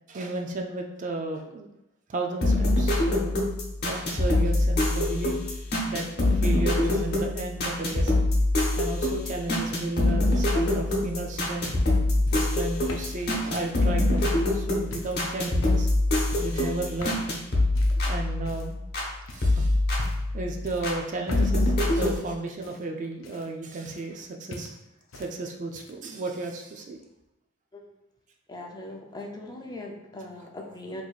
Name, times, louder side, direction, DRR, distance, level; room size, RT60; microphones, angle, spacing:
voice 1, 0.1-1.7 2.1-3.4 3.8-5.5 5.8-8.3 8.8-11.7 12.3-15.9 16.4-17.3 17.9-18.8 19.3-19.8 20.3-24.8 25.1-27.0, right 2 dB, 40° right, 3 dB, 0.4 m, -34 dB
sound 1, 2.4-19.1 19.4-21.0 21.3-22.2, left 1 dB, 55° left, 0.8 m, -25 dB
sound 2, 11.0-14.5 14.9-15.2 15.6-16.0 16.3-16.6 17.0-17.3 17.7-18.0 18.4-18.9 19.3-19.5 19.9-20.3 20.6-21.7 22.0-24.2 24.5-25.3 25.6-26.1 27.0-27.1, left 1 dB, 80° left, 0.5 m, -43 dB
voice 2, 28.5-31.0, left 1 dB, 20° left, 1 dB, 0.5 m, -40 dB
4.5 x 2.8 x 2.4 m, 0.90 s
head